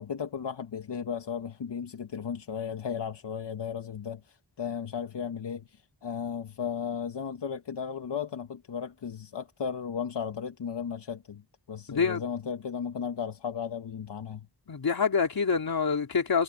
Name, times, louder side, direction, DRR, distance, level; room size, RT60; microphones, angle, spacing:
voice 1, 0.0-11.4 11.7-14.5, left 7 dB, 80° left, 1.9 m, -35 dB
voice 2, 11.9-12.2 14.7-16.4, left 5 dB, 60° left, 3.4 m, -26 dB
wide cardioid pair, 105°, 41 cm